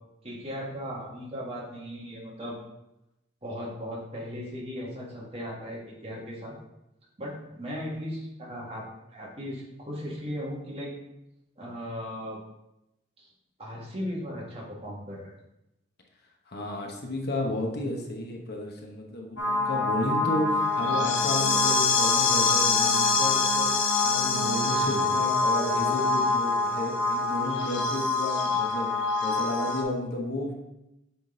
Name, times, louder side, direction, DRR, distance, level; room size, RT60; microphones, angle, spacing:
voice 1, 0.2-2.6 3.4-6.5 7.2-10.9 11.6-12.4 13.2-13.3 13.6-15.3 24.8-25.1, equal, 30° right, -4 dB, 1.8 m, -37 dB
voice 2, 16.5-23.7 24.0-28.9 29.2-30.5, left 1 dB, 60° left, 1 dB, 1.1 m, -32 dB
sound 1, 19.4-29.8, left 3 dB, 85° left, 1.1 m, -25 dB
7.9 x 3.8 x 3.8 m, 0.89 s
head